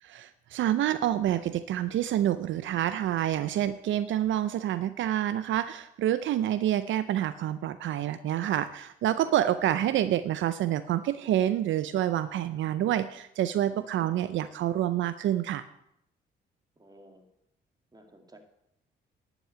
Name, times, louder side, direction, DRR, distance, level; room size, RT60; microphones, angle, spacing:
voice 1, 0.0-15.6, right 12 dB, 75° right, 13 dB, 0.6 m, -28 dB
voice 2, 13.7-14.1 16.8-17.3 17.9-18.4, right 1 dB, 20° right, 4 dB, 2.2 m, -53 dB
11.0 x 6.1 x 8.8 m, 0.79 s
cardioid pair, 90°, 20 cm